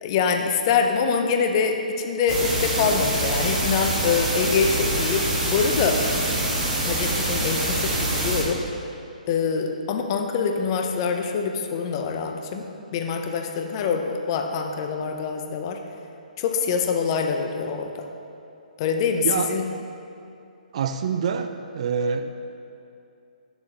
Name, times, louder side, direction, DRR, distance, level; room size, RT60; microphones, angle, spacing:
voice 1, 0.0-6.0 6.8-8.6 9.3-12.6 12.9-15.8 16.4-18.1 18.8-19.6, left 5 dB, 35° left, 4 dB, 0.7 m, -25 dB
sound 1, 2.3-8.4, right 1 dB, 15° right, 1.4 m, -25 dB
voice 2, 20.7-22.3, right 6 dB, 45° right, 8 dB, 0.4 m, -26 dB
10.5 x 6.9 x 2.8 m, 2.7 s
figure-of-eight pair, 135°, 5 cm